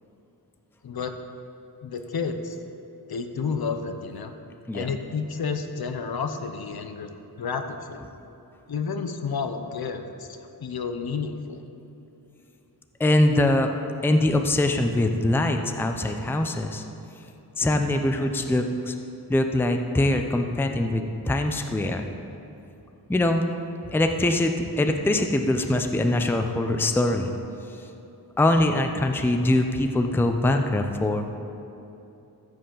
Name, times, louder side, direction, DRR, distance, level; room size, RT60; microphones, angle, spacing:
voice 1, 0.8-1.1 1.8-2.6 3.1-4.3 4.7-7.1 7.4-8.0 8.7-10.3 10.6-11.6, left 5 dB, 70° left, 7 dB, 0.8 m, -30 dB
voice 2, 13.0-13.7 14.0-16.8 17.6-18.9 19.3-22.1 23.1-23.4 23.9-27.3 28.4-31.2, left 1 dB, 5° left, 5 dB, 0.5 m, -23 dB
14.0 x 7.8 x 3.9 m, 2.8 s
wide cardioid pair, 130°, 39 cm